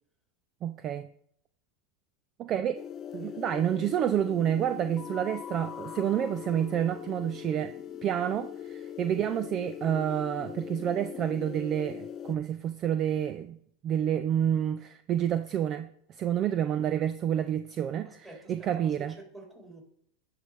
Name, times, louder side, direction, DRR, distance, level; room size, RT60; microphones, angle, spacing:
voice 1, 0.6-1.1 2.4-2.8 3.1-7.7 8.0-13.6 13.8-19.1, right 10 dB, 40° right, 0.4 m, -29 dB
sound 1, 2.7-12.4, left 9 dB, 40° left, 0.6 m, -41 dB
voice 2, 18.0-19.8, right 2 dB, 15° right, 3.6 m, -49 dB
12.0 x 4.8 x 3.4 m
hypercardioid pair, 100°, 0 cm